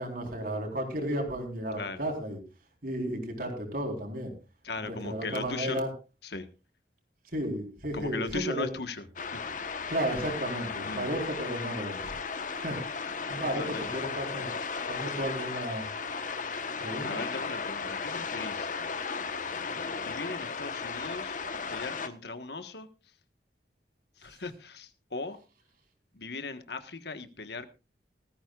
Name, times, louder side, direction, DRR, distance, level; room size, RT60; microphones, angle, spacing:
voice 1, 0.0-2.4 2.8-4.3 4.8-5.9 7.3-8.7 9.9-12.1 12.5-12.8 13.3-14.5 14.9-15.9 16.8-17.2, right 1 dB, 55° right, 3 dB, 4.0 m, -33 dB
voice 2, 1.7-2.0 4.6-5.8 6.2-6.5 7.9-9.0 9.3-9.4 10.9-11.1 13.6-14.0 17.0-18.7 20.0-22.9 24.2-25.4 26.1-27.7, left 3 dB, 65° left, 9 dB, 1.4 m, -38 dB
sound 1, 9.2-22.1, left 5 dB, 45° left, 1.1 m, -35 dB
19.0 x 14.0 x 2.4 m, 0.30 s
head